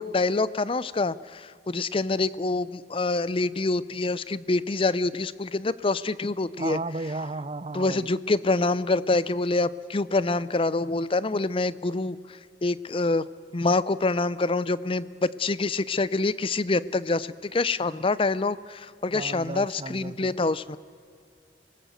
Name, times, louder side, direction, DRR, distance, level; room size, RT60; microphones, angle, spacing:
voice 1, 0.0-6.8 7.7-12.2 12.6-13.3 13.5-20.8, left 3 dB, 30° left, 18 dB, 0.5 m, -26 dB
voice 2, 6.6-8.1 19.1-20.4, right 3 dB, 30° right, 17 dB, 0.6 m, -34 dB
26.0 x 19.5 x 7.9 m, 2.4 s
head